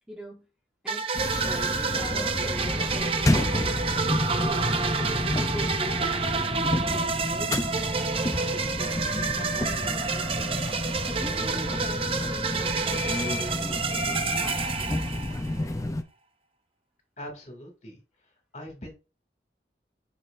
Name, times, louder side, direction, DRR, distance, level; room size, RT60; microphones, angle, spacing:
voice 1, 0.1-0.5 0.8-3.1 3.4-10.1 11.1-14.7, equal, 5° right, -1 dB, 1.1 m, -43 dB
sound 1, 0.9-15.6, right 5 dB, 30° right, 0.5 m, -29 dB
sound 2, 1.1-16.0, left 1 dB, 20° left, 0.5 m, -30 dB
voice 2, 17.2-18.0 18.5-18.9, left 1 dB, 40° left, 2 dB, 2.4 m, -41 dB
6.3 x 6.3 x 2.6 m, 0.30 s
head